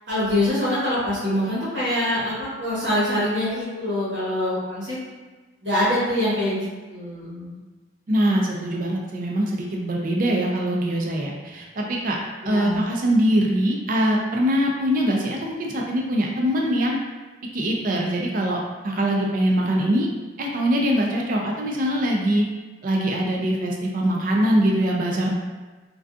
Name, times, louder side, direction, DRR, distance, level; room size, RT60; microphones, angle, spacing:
voice 1, 0.1-5.0 5.6-7.6 12.4-12.8, left 1 dB, 75° right, -9 dB, 1.0 m, -24 dB
voice 2, 8.1-12.2 12.4-17.0 17.5-20.1 20.4-22.5 22.8-25.3, equal, 50° right, -1 dB, 0.4 m, -23 dB
2.5 x 2.3 x 2.3 m, 1.3 s
head